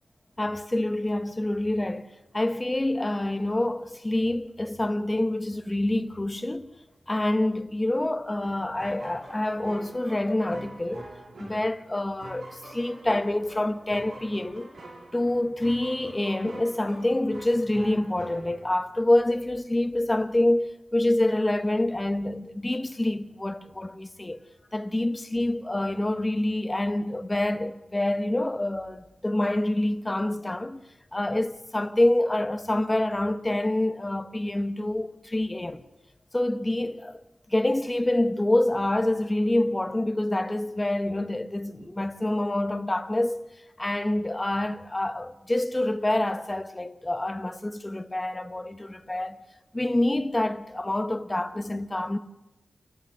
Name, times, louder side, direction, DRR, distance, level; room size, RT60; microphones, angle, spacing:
voice 1, 0.4-6.7 7.1-11.1 11.4-14.7 15.1-24.4 24.7-30.8 31.1-35.8 36.3-37.2 37.5-43.4 43.8-49.4 49.7-52.2, left 1 dB, 20° left, 1.3 m, -27 dB
sound 1, 8.4-19.0, right 2 dB, 85° right, 4.1 m, -46 dB
30.0 x 11.5 x 8.0 m
wide cardioid pair, 90°, 0 cm